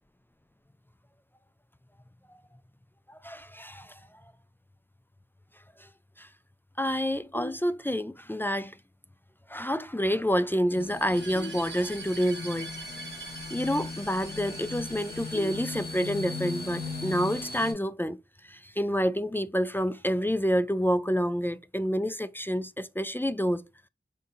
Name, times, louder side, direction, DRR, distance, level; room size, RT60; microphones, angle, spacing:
voice 1, 3.1-4.0 5.8-5.9 6.2-6.3 6.8-8.8 9.5-12.7 13.5-18.2 18.4-23.6, equal, 10° left, 0.3 m, -28 dB
sound 1, 7.3-8.3 11.3-12.3 15.3-16.3, left 1 dB, 70° left, 1.1 m, -44 dB
sound 2, 10.7-17.7, left 3 dB, 50° left, 2.4 m, -38 dB
sound 3, 11.1-16.1, right 5 dB, 70° right, 0.7 m, -45 dB
4.1 x 3.7 x 2.6 m
wide cardioid pair, 40°, 20 cm